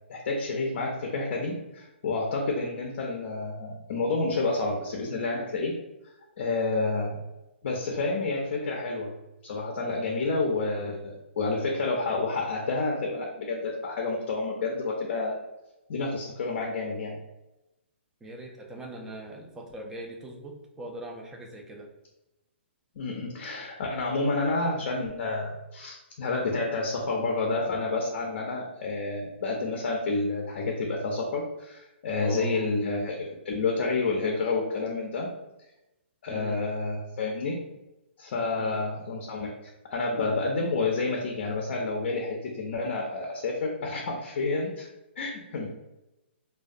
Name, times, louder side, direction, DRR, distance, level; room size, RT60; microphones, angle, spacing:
voice 1, 0.1-5.7 6.4-7.2 7.6-9.1 9.4-15.4 15.9-17.2 23.0-35.3 36.2-37.6 38.2-39.5 39.9-44.9 45.2-45.7, left 3 dB, 55° left, 0 dB, 0.5 m, -29 dB
voice 2, 18.2-21.9 32.2-32.7 36.3-36.6 38.6-38.8, right 1 dB, 10° right, 0 dB, 0.3 m, -40 dB
2.3 x 2.2 x 2.5 m, 0.97 s
hypercardioid pair, 145°, 7 cm